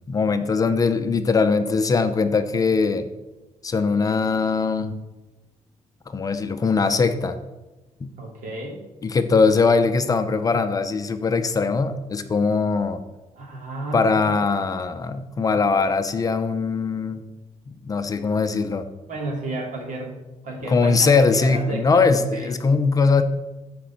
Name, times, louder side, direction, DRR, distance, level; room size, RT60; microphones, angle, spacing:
voice 1, 0.1-3.1 3.6-4.9 6.1-7.4 8.0-8.1 9.0-13.0 13.9-17.2 17.7-18.8 20.6-23.2, left 4 dB, 30° left, 9 dB, 0.7 m, -21 dB
voice 2, 8.2-8.8 13.3-14.3 19.1-20.2 20.4-22.0 22.3-22.5, right 2 dB, 80° right, 0 dB, 2.9 m, -32 dB
13.5 x 5.2 x 5.9 m, 1.1 s
cardioid pair, 165°, 13 cm